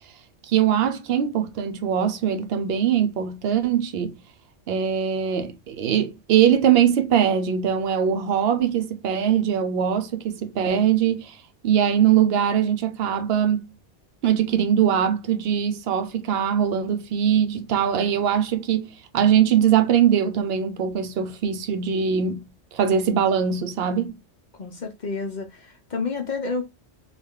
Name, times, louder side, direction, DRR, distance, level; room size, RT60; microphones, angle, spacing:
voice 1, 0.4-4.2 4.7-11.4 11.6-13.7 14.2-22.4 22.7-24.2, right 8 dB, 65° right, 0.8 m, -21 dB
voice 2, 24.6-26.6, left 4 dB, 50° left, 0.7 m, -30 dB
3.2 x 2.3 x 3.6 m
omnidirectional pair, 1.2 m